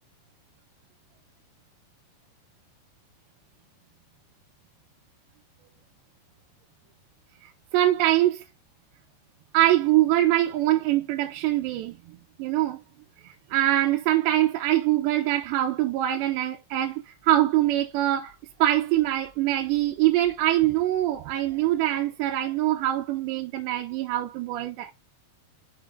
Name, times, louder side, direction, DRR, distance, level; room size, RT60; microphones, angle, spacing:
voice 1, 7.7-8.4 9.5-12.0 12.4-12.8 13.2-18.3 18.6-24.9, right 14 dB, 85° right, 3.1 m, -23 dB
7.2 x 6.8 x 3.6 m
omnidirectional pair, 4.9 m